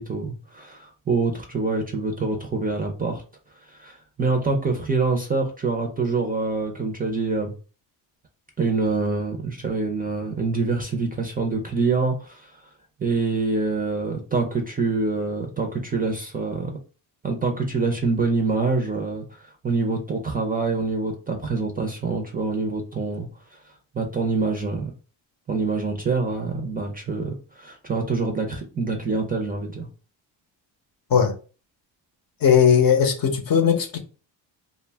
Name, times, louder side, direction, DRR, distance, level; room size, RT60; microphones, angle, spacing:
voice 1, 0.0-3.2 3.7-7.5 8.6-12.6 13.0-16.7 17.2-23.3 23.9-24.9 25.5-29.9, right 3 dB, 20° right, 0.4 m, -25 dB
voice 2, 32.4-34.0, left 7 dB, 45° left, 0.7 m, -18 dB
2.2 x 2.1 x 3.3 m
cardioid pair, 85°, 47 cm